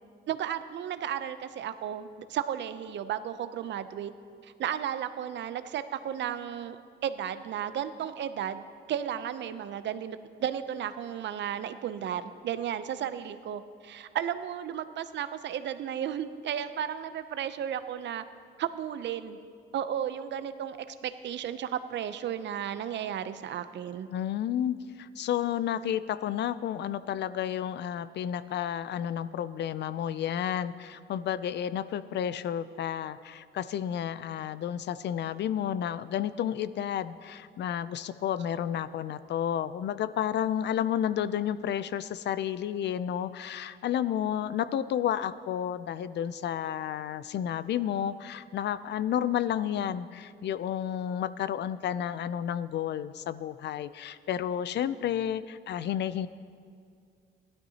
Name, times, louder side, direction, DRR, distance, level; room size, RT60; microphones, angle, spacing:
voice 1, 0.3-4.1 4.4-6.8 7.0-8.6 8.9-18.2 18.6-19.4 19.7-24.1, right 9 dB, 65° right, 12 dB, 0.6 m, -34 dB
voice 2, 24.1-56.3, left 10 dB, 60° left, 15 dB, 0.4 m, -31 dB
16.5 x 12.0 x 2.8 m, 2.2 s
cardioid pair, 90°, 20 cm